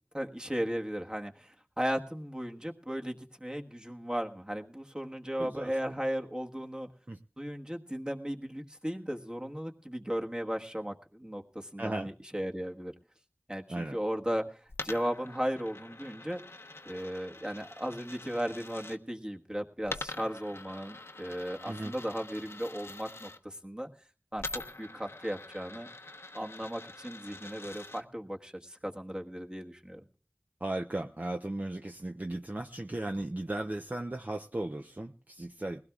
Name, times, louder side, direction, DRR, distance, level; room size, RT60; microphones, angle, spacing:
voice 1, 0.1-6.9 7.4-12.9 13.5-16.4 16.8-23.9 24.3-25.9 26.3-30.0, equal, 20° right, 2 dB, 1.4 m, -36 dB
voice 2, 5.4-5.9 7.1-7.2 11.8-12.1 13.7-14.0 21.6-21.9 30.6-35.8, right 1 dB, 40° right, 5 dB, 0.6 m, -36 dB
Coin (dropping), 14.7-19.0 19.8-23.4 24.4-28.0, left 2 dB, 70° left, 0.9 m, -45 dB
21.0 x 16.5 x 2.4 m, 0.39 s
wide cardioid pair, 45°, 4 cm